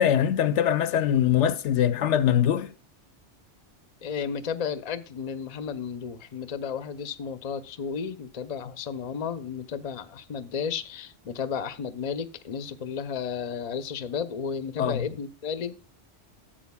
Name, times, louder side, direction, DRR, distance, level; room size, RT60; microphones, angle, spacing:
voice 1, 0.0-2.7 14.8-15.0, left 10 dB, 75° left, 0.9 m, -22 dB
voice 2, 4.0-15.8, left 6 dB, 40° left, 0.6 m, -33 dB
12.5 x 7.7 x 2.2 m
omnidirectional pair, 1.2 m